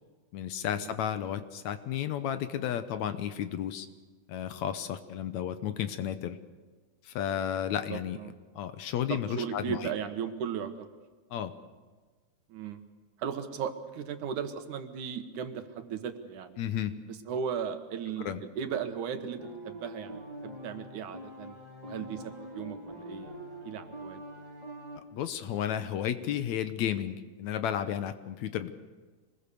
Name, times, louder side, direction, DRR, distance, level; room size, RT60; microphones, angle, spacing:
voice 1, 0.3-3.9 4.3-6.4 7.0-8.2 8.6-9.9 11.3-11.5 16.6-16.9 18.2-18.4 25.0-28.7, left 10 dB, 75° left, 10 dB, 2.0 m, -33 dB
voice 2, 7.9-8.3 9.1-10.9 12.5-12.8 13.2-16.6 17.3-21.6 21.8-23.3 23.6-24.2, right 7 dB, 75° right, 8 dB, 2.7 m, -36 dB
sound 1, 19.4-25.0, equal, 15° right, 2.6 m, -44 dB
25.0 x 20.5 x 6.8 m, 1.4 s
omnidirectional pair, 3.6 m